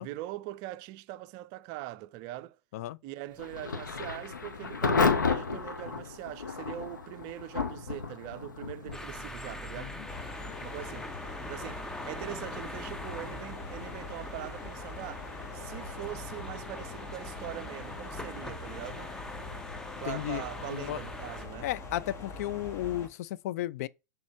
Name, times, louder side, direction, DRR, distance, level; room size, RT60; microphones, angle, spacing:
voice 1, 0.0-2.6 3.0-10.0 10.6-11.1 11.5-19.1 20.0-21.7, right 15 dB, 40° right, 0.5 m, -42 dB
Thunder / Rain, 3.4-20.1, left 5 dB, 75° left, 1.0 m, -36 dB
sound 1, 8.9-21.5, left 1 dB, 5° left, 0.7 m, -43 dB
sound 2, 10.1-23.1, left 3 dB, 25° left, 1.5 m, -43 dB
voice 2, 20.1-20.4 20.7-21.0 21.6-23.9, left 14 dB, 50° left, 0.4 m, -34 dB
6.3 x 3.6 x 4.3 m
figure-of-eight pair, 95°, 10 cm